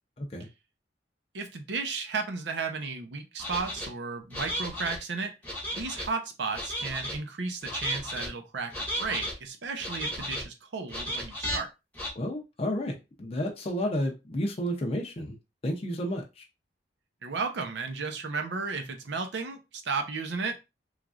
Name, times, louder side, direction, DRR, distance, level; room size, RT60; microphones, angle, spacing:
voice 1, 0.2-0.5 12.1-15.4 15.6-16.4, equal, 35° left, 1 dB, 0.5 m, -31 dB
voice 2, 1.3-5.3 5.8-11.7 17.2-20.6, right 4 dB, 75° right, 6 dB, 0.6 m, -34 dB
sound 1, 3.4-3.9 4.3-5.0 5.4-6.1 6.5-7.2 7.6-8.3 8.7-9.3 9.8-10.4 10.9-11.6 11.9-12.1, equal, 10° left, 0.9 m, -34 dB
3.1 x 2.4 x 2.3 m, 0.25 s
head